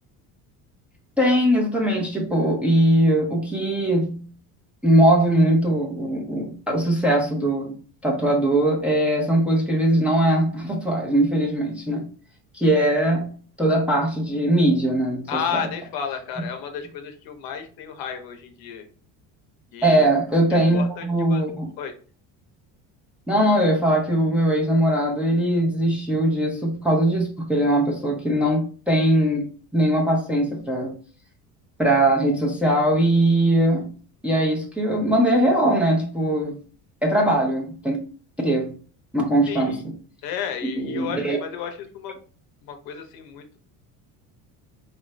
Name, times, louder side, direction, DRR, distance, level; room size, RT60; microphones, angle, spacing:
voice 1, 1.2-4.2 4.8-7.7 8.0-12.0 12.5-13.3 13.6-15.6 19.8-21.7 23.3-30.9 31.8-33.9 34.2-36.6 37.0-38.0 38.4-38.7 39.1-39.9 40.8-41.4, right 1 dB, 5° right, 0.7 m, -20 dB
voice 2, 15.3-18.9 19.7-20.1 20.5-21.4 21.8-21.9 39.5-39.8 40.2-42.1 42.6-43.4, left 7 dB, 65° left, 0.9 m, -32 dB
4.4 x 2.6 x 3.1 m
cardioid pair, 150°, 38 cm